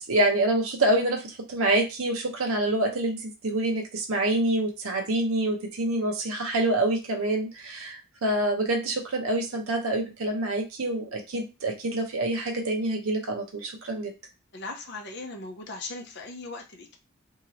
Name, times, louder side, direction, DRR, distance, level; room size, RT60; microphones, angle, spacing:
voice 1, 0.0-14.1, right 1 dB, 75° right, 3 dB, 0.7 m, -26 dB
voice 2, 14.5-17.0, left 3 dB, 50° left, 2 dB, 0.7 m, -38 dB
3.0 x 2.8 x 2.7 m, 0.27 s
head